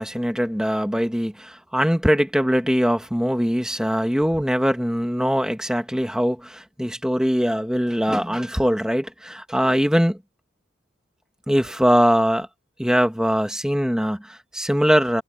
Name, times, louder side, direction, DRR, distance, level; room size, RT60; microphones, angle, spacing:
voice 1, 0.0-10.2 11.5-12.5 12.8-15.2, equal, 5° right, 1.6 m, -21 dB
head